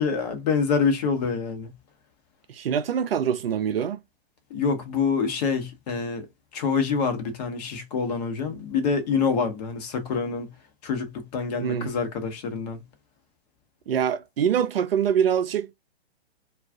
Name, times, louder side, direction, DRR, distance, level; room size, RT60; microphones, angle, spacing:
voice 1, 0.0-1.7 4.5-6.3 6.5-10.5 10.8-12.8, left 5 dB, 40° left, 0.9 m, -26 dB
voice 2, 2.5-4.0 11.6-11.9 13.9-15.7, right 8 dB, 65° right, 0.5 m, -24 dB
2.4 x 2.3 x 3.4 m
figure-of-eight pair, 125°, 32 cm